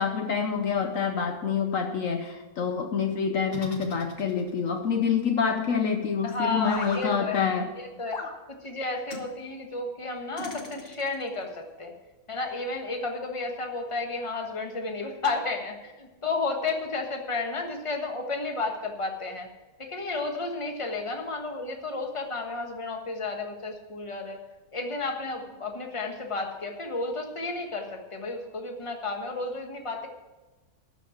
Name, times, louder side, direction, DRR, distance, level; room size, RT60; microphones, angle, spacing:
voice 1, 0.0-7.7, left 6 dB, 65° left, 6 dB, 1.2 m, -27 dB
sound 1, 3.5-4.7 6.6-7.1 8.1-8.4 9.1-9.3 10.4-11.2, left 3 dB, 40° left, 1.3 m, -38 dB
voice 2, 6.2-7.4 8.0-8.2 8.5-11.9 12.3-19.5 19.8-24.4 24.7-30.1, left 3 dB, 20° left, 3 dB, 1.4 m, -32 dB
12.0 x 5.8 x 8.8 m, 1.1 s
omnidirectional pair, 1.6 m